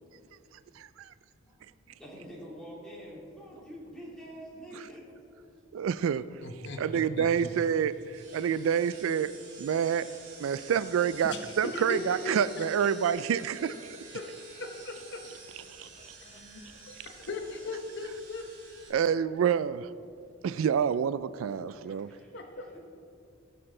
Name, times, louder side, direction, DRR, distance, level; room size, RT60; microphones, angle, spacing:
voice 1, 1.8-5.1 8.3-8.6 14.0-14.1 15.7-17.3 21.8-22.3 22.6-22.8, equal, 5° left, -6 dB, 3.0 m, -48 dB
voice 2, 5.7-6.2 6.8-7.9 8.3-9.3 9.6-10.1 10.4-13.7 15.8-15.9 18.9-19.9 20.4-22.1, right 8 dB, 80° right, 16 dB, 0.3 m, -27 dB
voice 3, 6.4-7.5 9.3-9.4 11.2-12.6 14.1-14.2 14.6-15.2 16.3-18.4 22.3-22.7, left 3 dB, 60° left, 4 dB, 1.0 m, -39 dB
sound 1, 7.3-18.9, right 4 dB, 55° right, 2.8 m, -50 dB
18.5 x 6.7 x 3.8 m, 2.6 s
head